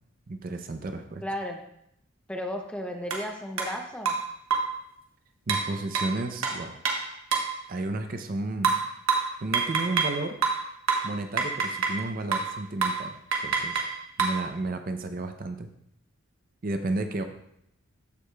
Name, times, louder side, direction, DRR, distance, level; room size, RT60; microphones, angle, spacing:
voice 1, 0.3-1.2 5.5-6.8 7.7-8.7 9.4-10.4 11.0-13.2 13.4-13.8 14.2-15.7 16.6-17.2, right 2 dB, 40° right, 7 dB, 0.5 m, -32 dB
voice 2, 1.2-1.6 2.3-4.2, left 1 dB, 5° left, 2 dB, 0.6 m, -34 dB
sound 1, 3.1-3.2 3.6-3.7 4.1-4.8 5.5-7.6 8.6-10.2 10.4-12.0 12.3-12.6 12.8-13.1 13.3-14.4, right 5 dB, 85° right, 1.1 m, -27 dB
13.5 x 4.8 x 2.2 m, 0.75 s
head